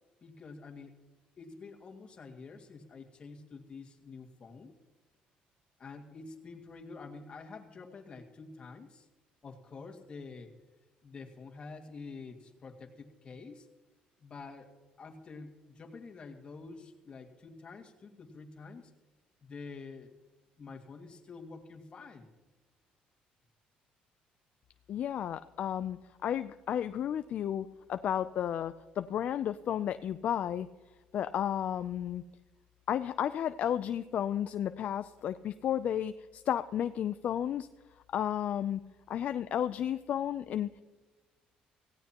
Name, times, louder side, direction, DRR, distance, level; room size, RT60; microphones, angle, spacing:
voice 1, 0.2-0.9 1.4-4.7 5.8-9.1 9.4-10.5 11.0-13.7 14.2-18.9 19.4-20.1 20.6-22.3, left 4 dB, 35° left, 3 dB, 2.0 m, -48 dB
voice 2, 24.9-30.7 31.1-32.2 32.9-37.7 38.1-38.8 39.1-40.8, left 10 dB, 55° left, 11 dB, 0.4 m, -33 dB
17.5 x 16.5 x 3.0 m, 1.2 s
cardioid pair, 115°, 3 cm